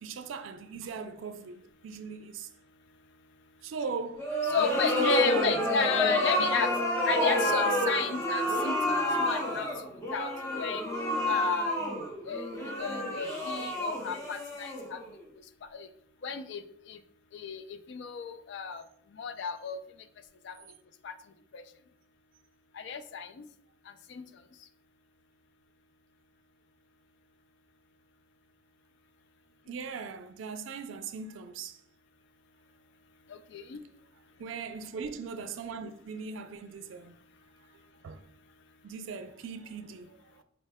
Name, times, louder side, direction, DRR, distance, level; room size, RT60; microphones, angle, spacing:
voice 1, 0.0-2.5 3.6-4.3 4.9-6.5 29.7-31.8 34.4-37.3 38.0-38.2 38.8-40.4, right 5 dB, 80° right, 0.4 m, -39 dB
sound 1, 4.2-15.2, left 1 dB, 15° left, 0.7 m, -29 dB
voice 2, 4.5-6.7 7.0-9.7 10.1-10.9 11.3-11.8 12.3-12.5 12.8-15.0 15.7-15.9 16.2-16.6 16.9-17.0 17.3-17.6 17.9-18.8 19.2-19.8 20.4-20.5 21.0-21.1 21.5-21.6 22.8-23.4 24.1-24.2 33.5-33.8, left 6 dB, 65° left, 0.3 m, -33 dB
4.1 x 2.2 x 3.4 m
head